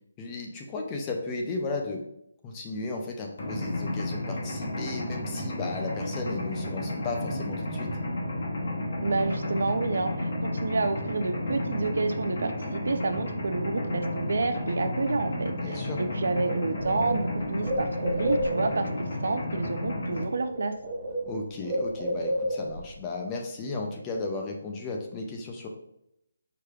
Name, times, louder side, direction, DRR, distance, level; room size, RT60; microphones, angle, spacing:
voice 1, 0.2-2.0 2.4-8.0 15.6-16.0 21.3-25.7, left 3 dB, 10° left, 1 dB, 0.3 m, -35 dB
Mechanisms, 3.4-20.2, left 1 dB, 40° left, 0.9 m, -32 dB
voice 2, 9.0-20.7, right 3 dB, 55° right, 8 dB, 0.5 m, -29 dB
Bird, 16.0-16.1 16.4-18.9 20.0-20.2 20.5-22.9, equal, 35° right, 1.3 m, -31 dB
4.9 x 4.7 x 2.3 m, 0.79 s
hypercardioid pair, 180°, 0 cm